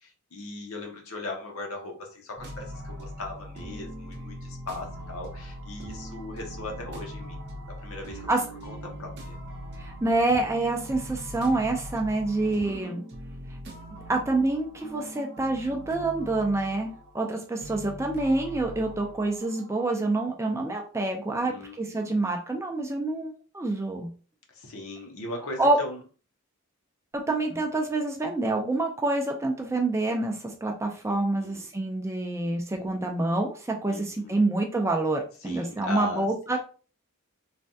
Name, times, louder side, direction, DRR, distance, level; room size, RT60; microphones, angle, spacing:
voice 1, 0.0-7.4 7.7-8.3 8.7-9.4 12.3-12.9 21.4-22.2 24.5-26.0 31.1-31.6 33.9-34.4 35.4-36.3, left 2 dB, 70° left, 2 dB, 0.8 m, -39 dB
sound 1, 2.4-19.9, equal, 50° right, 0.6 m, -41 dB
voice 2, 9.8-13.0 14.1-24.1 25.6-25.8 27.1-36.6, right 2 dB, 15° right, 2 dB, 0.3 m, -27 dB
3.2 x 2.2 x 2.6 m, 0.37 s
head